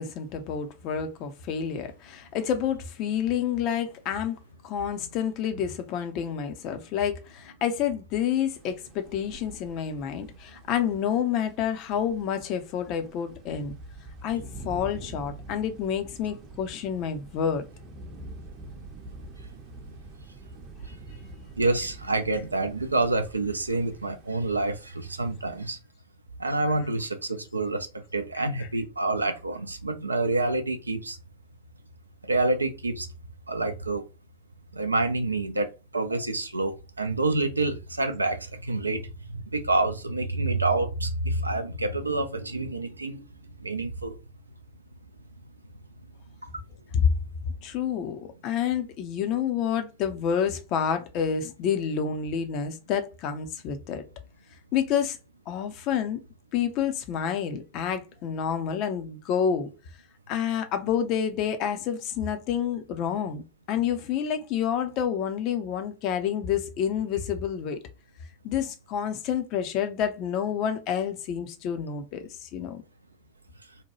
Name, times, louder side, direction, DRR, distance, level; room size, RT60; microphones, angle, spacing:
voice 1, 0.0-4.4 4.6-13.7 14.2-17.6 47.0-47.1 47.6-54.0 54.7-55.2 55.5-56.2 56.5-59.7 60.3-63.4 63.7-67.8 68.4-72.8, left 8 dB, 40° left, 0.5 m, -28 dB
sound 1, 8.4-25.7, right 2 dB, 30° right, 0.6 m, -46 dB
voice 2, 21.6-25.8 26.4-27.9 28.1-31.2 32.3-33.1 33.5-34.0 34.7-35.7 35.9-43.2 43.6-44.1, right 2 dB, 80° right, 0.4 m, -27 dB
2.7 x 2.2 x 2.9 m
figure-of-eight pair, 90°, 0 cm